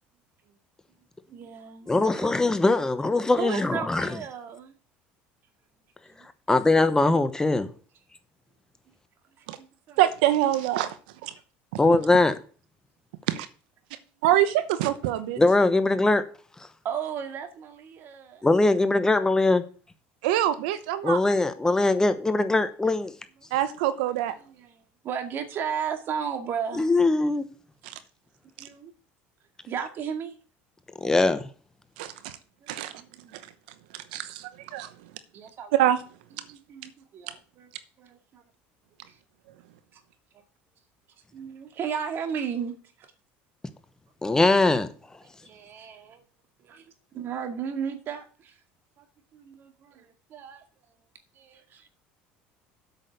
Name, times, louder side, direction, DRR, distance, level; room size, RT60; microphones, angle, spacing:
voice 1, 1.3-2.3 3.4-4.7 6.1-6.2 9.4-10.0 16.8-18.4 24.4-26.8 28.6-28.9 29.7-30.3 32.6-33.5 35.3-35.7 36.4-37.7 38.0-38.4 39.1-39.2 39.9-40.0 41.3-42.7 43.0-43.1 45.4-46.2 46.6-46.8 47.1-48.5 49.0-49.1 49.3-50.6 51.4-51.9, right 7 dB, 50° right, 2.2 m, -35 dB
voice 2, 1.9-4.2 6.5-7.7 11.8-12.4 15.4-16.2 18.4-19.6 21.0-23.1 26.8-27.4 31.0-31.4 44.2-44.9, left 2 dB, 15° left, 1.0 m, -21 dB
voice 3, 10.0-11.0 11.2-11.3 13.3-13.5 14.2-15.4 20.2-21.2 23.5-24.3 27.8-27.9 32.0-32.4 32.7-32.9 33.9-34.9 35.7-36.0, right 13 dB, 85° right, 0.9 m, -25 dB
8.2 x 6.3 x 6.9 m
supercardioid pair, 110°, 5 cm